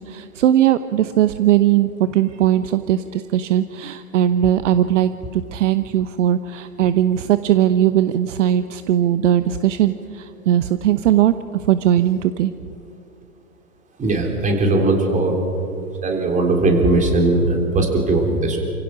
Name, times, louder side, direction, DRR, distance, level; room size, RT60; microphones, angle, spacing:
voice 1, 0.0-11.3 11.7-12.5, right 11 dB, 55° right, 12 dB, 0.9 m, -19 dB
voice 2, 14.0-15.3 16.0-18.6, right 2 dB, 15° right, 2 dB, 3.8 m, -18 dB
29.0 x 16.0 x 6.1 m, 2.6 s
hypercardioid pair, 120°, 45 cm